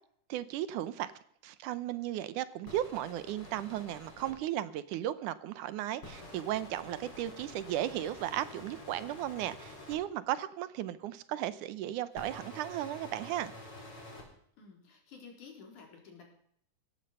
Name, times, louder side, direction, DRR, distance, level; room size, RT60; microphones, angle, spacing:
voice 1, 0.3-1.1 1.4-13.5, right 12 dB, 80° right, 15 dB, 2.3 m, -35 dB
sound 1, 2.7-4.3 6.0-10.0 12.1-14.2, left 1 dB, 45° left, 5.9 m, -48 dB
voice 2, 14.6-16.2, left 5 dB, 75° left, 2 dB, 5.1 m, -52 dB
17.0 x 13.5 x 5.5 m, 0.64 s
omnidirectional pair, 3.6 m